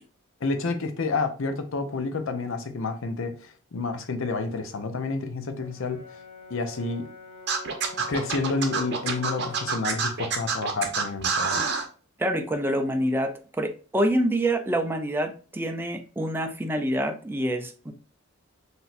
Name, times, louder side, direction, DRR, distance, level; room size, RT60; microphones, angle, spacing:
voice 1, 0.4-6.0 6.5-7.1 8.1-11.6, left 3 dB, 65° left, 0.6 m, -29 dB
Brass instrument, 5.6-9.9, left 2 dB, 30° left, 1.2 m, -44 dB
Scratching (performance technique), 7.5-11.8, right 5 dB, 55° right, 0.8 m, -27 dB
voice 2, 12.2-17.9, right 1 dB, 10° right, 0.5 m, -26 dB
5.9 x 2.7 x 2.5 m
head